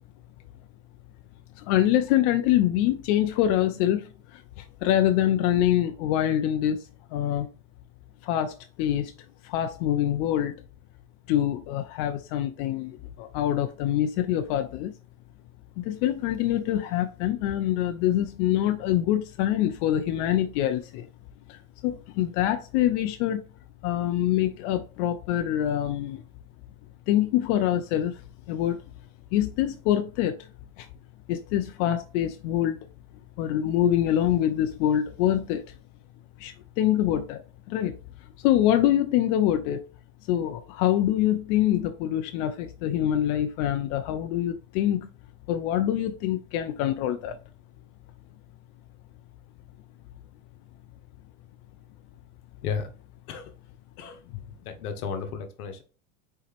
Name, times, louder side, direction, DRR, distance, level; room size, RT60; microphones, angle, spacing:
voice 1, 1.6-6.8 7.1-7.5 8.2-9.1 9.4-10.5 11.3-15.0 15.8-21.1 21.5-23.4 23.8-26.2 27.1-28.2 28.5-28.8 29.3-30.5 30.8-30.9 31.3-32.8 33.4-35.6 36.4-37.4 37.7-38.0 38.4-39.8 40.3-45.1 45.5-47.4, left 12 dB, 55° left, 0.6 m, -25 dB
voice 2, 54.5-55.8, left 6 dB, 80° left, 1.1 m, -33 dB
4.4 x 3.4 x 3.3 m
hypercardioid pair, 105°, 44 cm